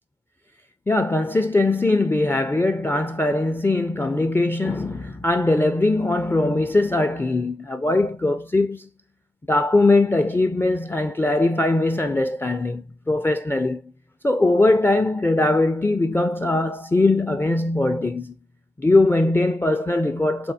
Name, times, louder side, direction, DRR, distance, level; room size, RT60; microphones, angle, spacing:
voice 1, 0.9-8.9 9.5-13.8 14.2-18.3 18.8-20.5, left 2 dB, 10° left, 0.4 m, -21 dB
4.2 x 2.1 x 2.7 m
supercardioid pair, 50°, 21 cm